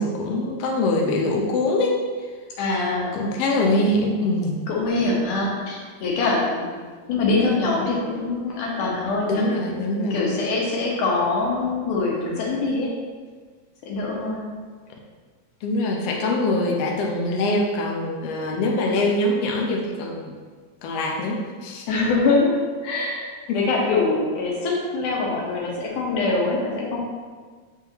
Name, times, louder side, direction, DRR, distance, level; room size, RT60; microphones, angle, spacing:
voice 1, 0.0-2.0 3.1-4.6 9.3-10.3 15.6-20.3 20.8-21.8 23.5-23.6, left 2 dB, 85° left, 0 dB, 1.3 m, -23 dB
voice 2, 2.6-3.3 4.7-6.7 7.1-9.5 10.1-12.9 13.8-14.5 21.9-27.0, left 3 dB, 70° left, -3 dB, 2.5 m, -24 dB
7.1 x 5.5 x 2.9 m, 1.5 s
omnidirectional pair, 4.0 m